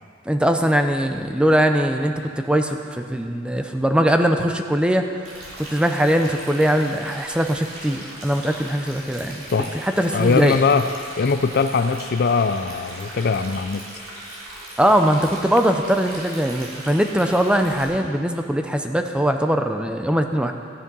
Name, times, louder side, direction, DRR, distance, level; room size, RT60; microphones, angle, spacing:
voice 1, 0.3-5.1 5.6-10.6 14.8-20.5, equal, 5° right, 5 dB, 0.6 m, -21 dB
Stream, 5.2-17.8, right 1 dB, 85° right, 3.5 m, -38 dB
voice 2, 10.1-10.9 11.2-13.8, left 5 dB, 50° left, 10 dB, 0.5 m, -21 dB
13.0 x 10.0 x 5.5 m, 2.3 s
head